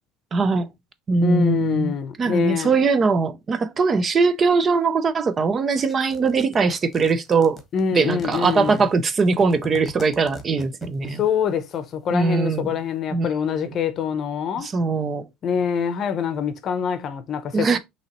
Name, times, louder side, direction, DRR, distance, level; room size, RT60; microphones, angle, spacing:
voice 1, 0.3-0.7 1.1-1.9 2.2-7.6 7.9-11.2 12.1-12.8 13.1-13.3 14.6-15.3 17.5-17.8, right 4 dB, 25° right, 0.5 m, -21 dB
voice 2, 1.2-2.7 7.7-8.9 11.0-14.7 15.4-17.8, left 7 dB, 40° left, 0.7 m, -25 dB
sound 1, 5.8-11.2, left 2 dB, 20° left, 1.1 m, -41 dB
5.5 x 3.0 x 2.9 m
cardioid pair, 130°, 0 cm